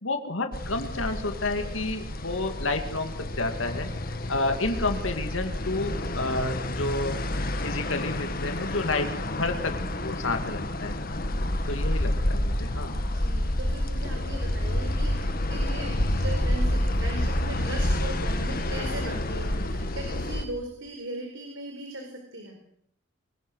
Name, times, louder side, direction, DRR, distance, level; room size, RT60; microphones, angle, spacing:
voice 1, 0.0-7.2 7.6-11.0 11.7-13.0, left 2 dB, 85° left, 6 dB, 2.4 m, -30 dB
sound 1, 0.5-20.5, left 1 dB, 45° left, 1.6 m, -29 dB
voice 2, 13.1-22.6, right 1 dB, 80° right, 3 dB, 4.5 m, -38 dB
25.5 x 20.0 x 6.4 m, 0.69 s
head